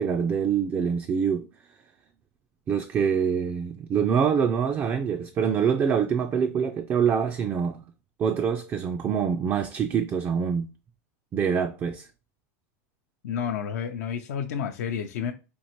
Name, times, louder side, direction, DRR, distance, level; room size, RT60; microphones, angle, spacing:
voice 1, 0.0-1.5 2.7-7.8 8.2-10.7 11.3-12.1, right 7 dB, 25° right, 0.3 m, -25 dB
voice 2, 13.2-15.3, left 7 dB, 80° left, 0.5 m, -30 dB
4.4 x 2.4 x 2.9 m
supercardioid pair, 125°, 9 cm